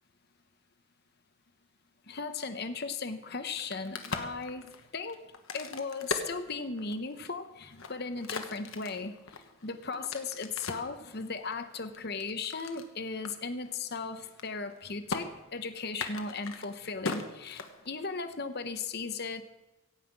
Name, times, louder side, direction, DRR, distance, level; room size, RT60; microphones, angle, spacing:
voice 1, 2.1-5.2 5.5-9.2 9.6-19.4, left 4 dB, 45° left, 9 dB, 0.9 m, -37 dB
Crack, 3.5-7.1 7.6-10.9 11.5-12.9 13.2-13.3 13.6-14.0 14.2-14.8 15.1-15.2 15.9-18.1, left 4 dB, 65° left, 1.2 m, -39 dB
15.5 x 5.8 x 8.6 m, 1.0 s
head